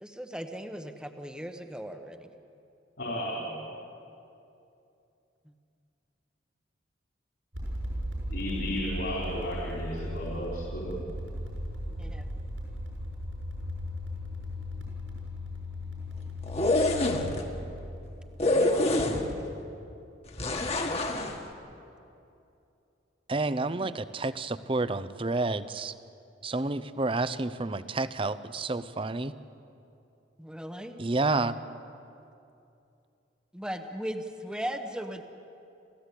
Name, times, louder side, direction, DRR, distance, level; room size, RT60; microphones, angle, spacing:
voice 1, 0.0-2.3 12.0-12.2 23.7-24.0 30.4-31.1 33.5-35.2, equal, 5° right, 6 dB, 1.0 m, -38 dB
voice 2, 3.0-3.7 8.3-11.0, equal, 65° left, -3 dB, 4.2 m, -34 dB
sound 1, 7.5-19.3, left 1 dB, 85° right, 7.0 m, -37 dB
sound 2, 16.4-17.4 18.4-19.5 20.4-21.4, left 2 dB, 35° left, 1.7 m, -26 dB
voice 3, 23.3-25.9 26.4-29.3 31.0-31.6, right 3 dB, 30° right, 14 dB, 0.6 m, -29 dB
29.5 x 15.0 x 8.4 m, 2.7 s
head